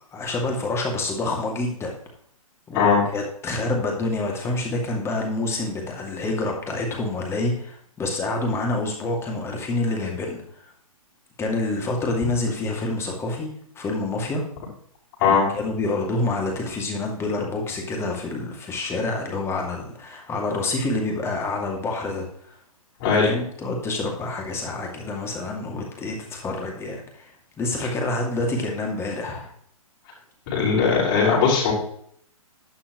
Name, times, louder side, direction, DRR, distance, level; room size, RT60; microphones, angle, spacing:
voice 1, 0.1-1.9 2.7-10.7 11.4-13.5 13.8-14.4 15.3-22.6 23.2-29.5, left 2 dB, 15° left, 1 dB, 2.5 m, -27 dB
voice 2, 23.0-23.3 30.5-31.7, left 5 dB, 40° left, -6 dB, 5.5 m, -19 dB
11.5 x 10.0 x 3.1 m, 0.63 s
figure-of-eight pair, 120°, 18 cm